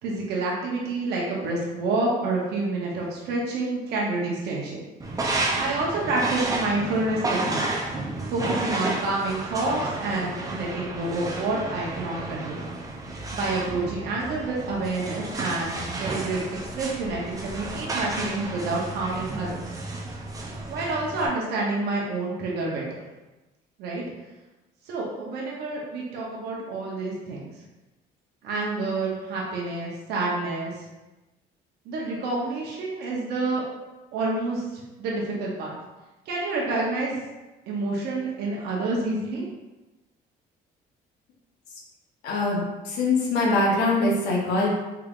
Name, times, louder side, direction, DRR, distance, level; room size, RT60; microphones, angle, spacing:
voice 1, 0.0-4.8 5.5-7.6 8.3-12.6 13.3-19.6 20.7-22.8 23.8-24.0 24.9-27.5 28.4-30.7 31.9-33.6 34.1-35.8 36.3-37.2 37.7-39.4, right 2 dB, 75° right, -3 dB, 0.8 m, -28 dB
sound 1, 5.0-21.3, right 2 dB, 20° right, 0.5 m, -31 dB
voice 2, 42.2-44.7, left 2 dB, 85° left, -3 dB, 0.8 m, -23 dB
3.5 x 3.4 x 2.4 m, 1.1 s
cardioid pair, 110°, 17 cm